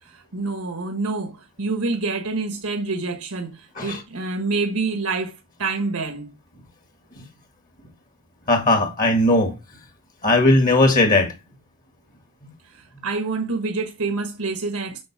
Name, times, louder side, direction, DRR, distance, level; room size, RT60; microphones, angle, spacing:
voice 1, 0.0-5.3 5.6-6.3 12.6-15.0, right 3 dB, 70° right, 1.3 m, -27 dB
voice 2, 8.5-9.5 10.2-11.3, left 2 dB, 40° left, 1.9 m, -17 dB
7.9 x 6.2 x 4.7 m
head